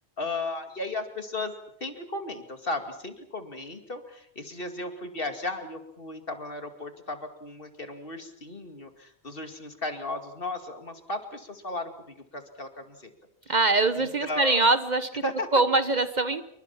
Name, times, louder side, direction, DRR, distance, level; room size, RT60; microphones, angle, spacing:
voice 1, 0.2-1.5 1.8-13.1 13.9-14.6 15.2-15.5, left 2 dB, 55° left, 6 dB, 2.7 m, -35 dB
voice 2, 13.5-15.2 15.5-16.4, right 3 dB, 45° right, 11 dB, 1.2 m, -23 dB
28.5 x 24.0 x 5.8 m, 0.74 s
omnidirectional pair, 1.1 m